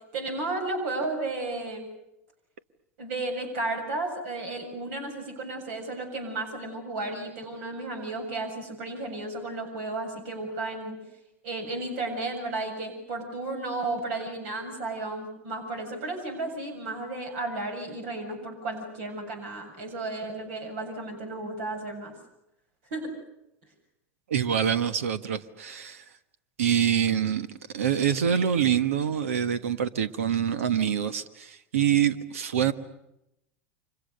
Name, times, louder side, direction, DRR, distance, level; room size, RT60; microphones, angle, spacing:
voice 1, 0.1-1.9 3.0-11.0 11.4-22.1 22.9-23.1, right 2 dB, 70° right, 4 dB, 7.5 m, -33 dB
voice 2, 24.3-26.0 26.6-32.7, right 9 dB, 85° right, 12 dB, 1.4 m, -25 dB
30.0 x 25.0 x 6.7 m, 0.84 s
hypercardioid pair, 100°, 7 cm